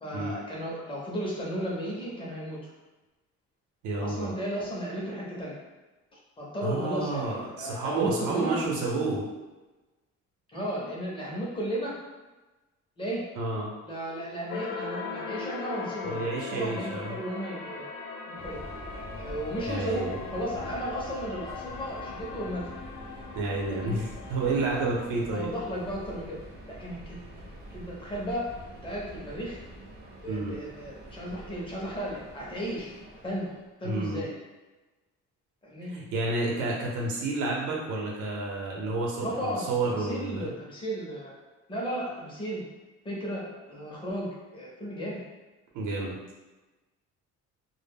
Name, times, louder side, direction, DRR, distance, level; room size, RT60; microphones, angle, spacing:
voice 1, 0.0-2.6 3.9-5.6 6.4-8.6 10.5-12.0 13.0-13.2 13.8-16.2 16.5-17.9 18.3-18.6 19.2-22.6 23.8-24.0 25.3-26.4 26.7-27.4 27.7-28.5 28.8-29.6 30.2-32.9 33.2-34.3 35.6-35.9 39.2-41.3 41.7-42.6 43.0-45.2, equal, 15° left, -5 dB, 0.5 m, -34 dB
voice 2, 3.8-4.3 6.6-9.2 13.4-13.7 16.1-17.2 19.6-20.2 23.3-25.5 30.3-30.5 33.8-34.2 35.9-40.5 45.7-46.2, right 2 dB, 85° right, -2 dB, 0.7 m, -30 dB
sound 1, 14.5-25.0, left 5 dB, 75° left, 0.5 m, -39 dB
Subway metro underground, 18.4-33.7, right 1 dB, 35° right, 0.4 m, -45 dB
2.1 x 2.1 x 3.4 m, 1.1 s
cardioid pair, 150°, 30 cm